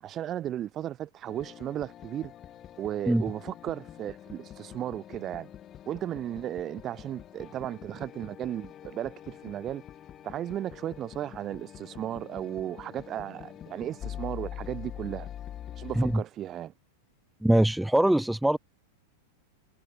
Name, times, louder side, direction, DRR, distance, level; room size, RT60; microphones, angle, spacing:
voice 1, 0.0-2.3 2.8-5.5 5.9-9.8 10.2-15.3 15.7-16.7, right 11 dB, 35° right, 0.9 m, -35 dB
sound 1, 1.3-16.2, left 11 dB, 30° left, 1.6 m, -44 dB
voice 2, 17.4-18.6, right 1 dB, 5° right, 0.7 m, -22 dB
hypercardioid pair, 95°, 0 cm